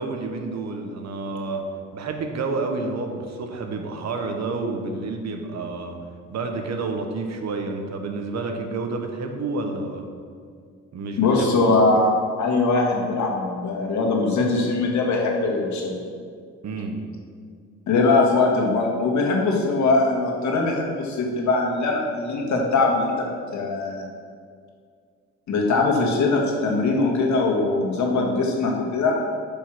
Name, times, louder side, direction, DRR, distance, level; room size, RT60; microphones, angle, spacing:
voice 1, 0.0-1.6 1.9-6.0 6.3-10.0 10.9-11.6 16.6-17.0, right 3 dB, 60° right, 4 dB, 1.3 m, -29 dB
voice 2, 11.2-12.1 12.4-15.9 17.9-24.1 25.5-29.2, left 3 dB, 70° left, 0 dB, 1.9 m, -21 dB
9.8 x 5.4 x 6.2 m, 2.2 s
cardioid pair, 90°, 30 cm